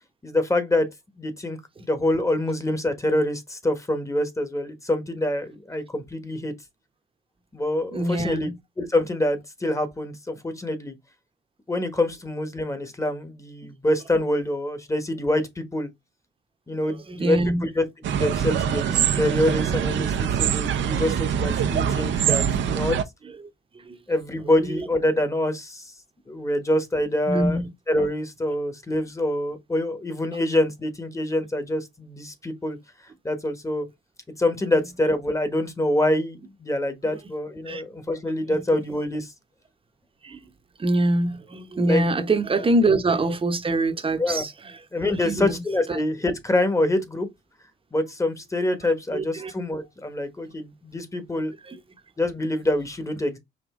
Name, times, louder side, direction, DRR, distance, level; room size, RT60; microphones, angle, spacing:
voice 1, 0.2-0.9 1.2-6.5 7.5-8.5 8.8-10.9 11.7-15.9 16.7-17.8 18.1-23.0 24.1-25.9 26.3-27.6 27.9-32.8 33.2-33.8 34.4-39.3 41.9-42.0 44.2-44.4 44.9-47.3 47.9-51.5 52.2-53.4, left 1 dB, 15° left, 1.2 m, -25 dB
voice 2, 7.9-8.6 16.9-17.6 23.8-24.0 24.6-24.9 27.3-27.7 37.7-37.8 40.2-40.4 40.8-44.5 45.0-45.5 45.9-46.0 49.1-49.5 51.7-51.8, right 2 dB, 25° right, 0.9 m, -24 dB
sound 1, 18.0-23.0, right 8 dB, 70° right, 0.7 m, -24 dB
5.1 x 2.8 x 3.6 m
cardioid pair, 90°, 20 cm